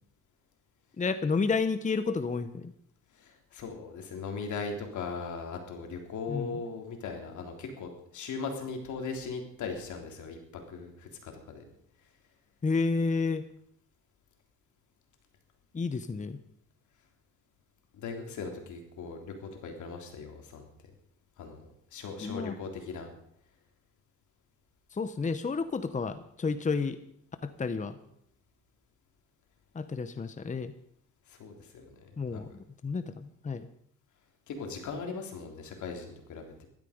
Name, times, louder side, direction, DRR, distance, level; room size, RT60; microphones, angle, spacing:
voice 1, 1.0-2.7 6.3-6.5 12.6-13.4 15.7-16.4 22.2-22.5 25.0-27.0 27.4-27.9 29.7-30.7 32.2-32.5 32.8-33.6, left 4 dB, 25° left, 11 dB, 0.9 m, -30 dB
voice 2, 3.1-11.6 17.9-20.6 21.4-21.6 21.9-23.1 31.3-32.4 34.5-36.7, left 4 dB, 75° left, 3 dB, 3.6 m, -39 dB
15.5 x 13.0 x 5.2 m, 0.69 s
cardioid pair, 90°, 30 cm